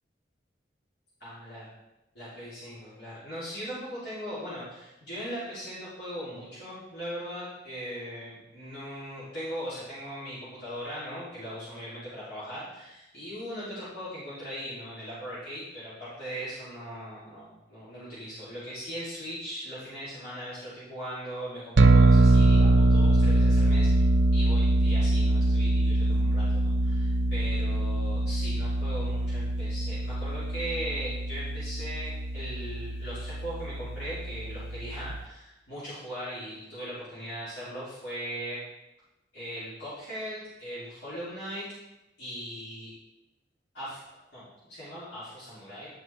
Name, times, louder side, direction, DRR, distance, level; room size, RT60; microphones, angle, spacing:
voice 1, 1.2-1.7 2.1-24.1 24.3-38.6 39.3-41.6 42.2-42.9 43.7-44.0 44.3-45.9, equal, 70° left, -11 dB, 3.2 m, -39 dB
sound 1, 21.8-35.2, right 2 dB, 80° right, 0.6 m, -23 dB
9.7 x 5.8 x 3.5 m, 0.96 s
head